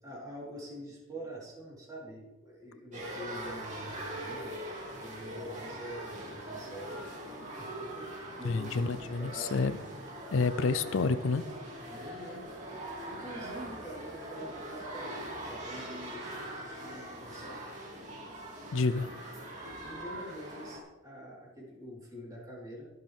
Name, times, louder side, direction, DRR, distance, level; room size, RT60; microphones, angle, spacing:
voice 1, 0.0-4.7 5.0-9.9 11.9-12.5 13.0-15.2 15.5-17.7 19.8-22.9, equal, 15° right, -5 dB, 3.9 m, -45 dB
sound 1, 2.9-20.8, right 1 dB, 35° right, 2.8 m, -42 dB
voice 2, 8.4-9.8 10.3-11.4 18.7-19.1, left 4 dB, 70° left, 13 dB, 0.5 m, -29 dB
21.5 x 7.9 x 3.5 m, 1.1 s
head